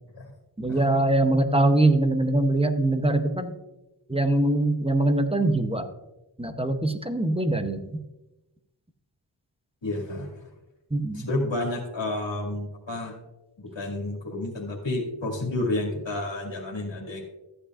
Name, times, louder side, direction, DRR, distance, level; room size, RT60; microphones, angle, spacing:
voice 1, 0.6-3.6 4.1-5.9 6.4-8.0 10.9-11.3, right 2 dB, 15° right, 7 dB, 0.7 m, -23 dB
voice 2, 9.8-10.5 11.1-13.1 13.6-17.3, left 2 dB, 85° left, -1 dB, 2.2 m, -30 dB
13.5 x 8.4 x 2.5 m, 0.98 s
wide cardioid pair, 70°, 43 cm